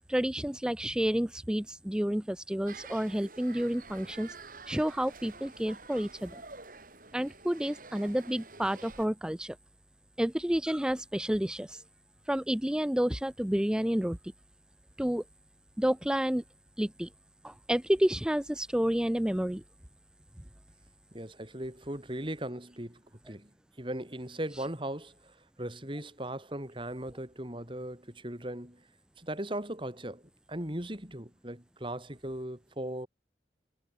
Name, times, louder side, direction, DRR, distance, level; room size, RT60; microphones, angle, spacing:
voice 1, 0.1-4.3 4.7-6.4 7.1-9.6 10.2-11.8 12.3-14.2 15.0-15.2 15.8-16.4 16.8-17.1 17.4-19.6, equal, 5° right, 0.4 m, -30 dB
sound 1, 2.7-9.1, right 4 dB, 50° right, 7.9 m, -49 dB
voice 2, 21.1-23.5 23.8-28.8 29.2-30.2 30.5-33.1, right 1 dB, 30° right, 3.6 m, -38 dB
head